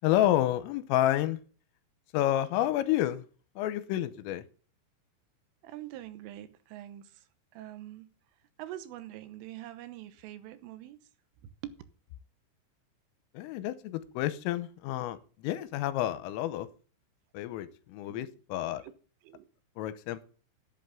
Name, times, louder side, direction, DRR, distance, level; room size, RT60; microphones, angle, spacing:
voice 1, 0.0-1.4 2.1-3.2 3.6-4.4 13.3-16.7 17.3-18.8 19.8-20.3, left 13 dB, 85° left, 3.4 m, -29 dB
voice 2, 5.6-7.3 7.5-8.1 8.6-11.0 11.4-11.7 18.1-18.3 18.6-18.9 19.2-19.5, right 13 dB, 80° right, 3.5 m, -44 dB
12.0 x 8.2 x 7.2 m
omnidirectional pair, 5.9 m